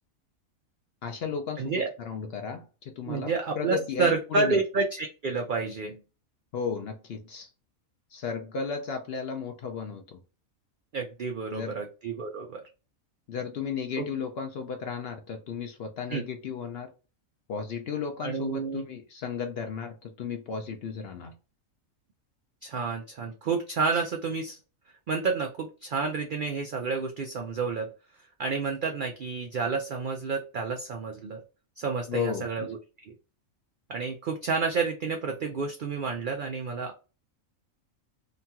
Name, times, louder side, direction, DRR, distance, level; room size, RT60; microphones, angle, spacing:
voice 1, 1.0-4.6 6.5-7.5 8.1-10.2 11.5-11.8 13.3-16.9 17.5-21.3 32.1-32.7, left 6 dB, 60° left, 5 dB, 0.7 m, -34 dB
voice 2, 1.6-1.9 3.1-6.0 10.9-12.6 14.0-14.1 16.1-16.2 18.2-18.8 22.6-24.6 25.1-27.9 28.4-31.4 31.8-32.8 33.1-33.2 33.9-37.0, right 4 dB, 85° right, 3 dB, 0.4 m, -30 dB
2.9 x 2.3 x 2.7 m, 0.33 s
omnidirectional pair, 1.4 m